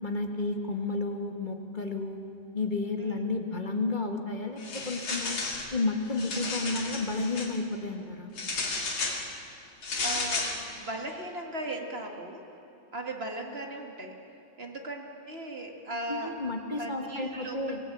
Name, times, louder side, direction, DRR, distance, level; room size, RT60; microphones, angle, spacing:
voice 1, 0.0-2.2 2.5-4.6 4.8-5.4 5.7-8.3 16.1-17.8, left 3 dB, 25° left, 4 dB, 1.4 m, -31 dB
sound 1, 4.6-5.7 6.1-7.5 8.4-9.2 9.8-10.6, left 3 dB, 75° left, 3.2 m, -32 dB
voice 2, 10.0-10.5 10.7-12.4 12.9-14.2 14.6-16.3 16.8-17.8, right 1 dB, 30° right, 2 dB, 1.8 m, -37 dB
24.5 x 16.5 x 8.5 m, 2.7 s
omnidirectional pair, 2.2 m